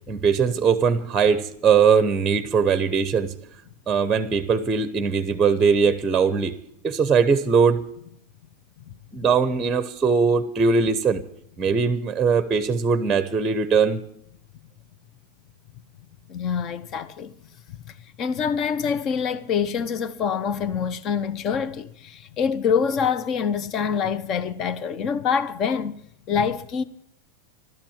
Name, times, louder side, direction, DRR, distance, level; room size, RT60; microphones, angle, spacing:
voice 1, 0.1-3.3 3.9-6.5 6.8-7.8 9.1-11.2 11.6-14.0, right 5 dB, 15° right, 0.9 m, -20 dB
voice 2, 16.3-17.3 17.7-26.0 26.3-26.8, left 7 dB, 35° left, 0.9 m, -25 dB
13.0 x 12.5 x 7.3 m
supercardioid pair, 140°, 0 cm